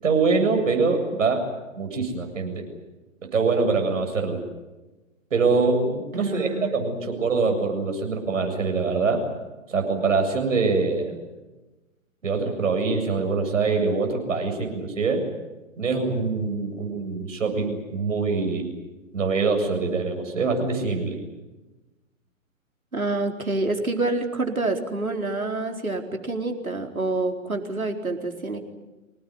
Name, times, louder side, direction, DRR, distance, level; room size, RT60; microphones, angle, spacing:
voice 1, 0.0-1.5 1.8-2.6 3.3-4.4 5.3-9.2 9.7-11.2 12.2-15.2 15.8-18.7 19.1-21.2, right 4 dB, 65° right, 4 dB, 7.7 m, -24 dB
voice 2, 6.1-6.7 22.9-28.6, right 2 dB, 90° right, 3 dB, 4.2 m, -27 dB
26.0 x 19.0 x 9.7 m, 1.1 s
figure-of-eight pair, 125°, 41 cm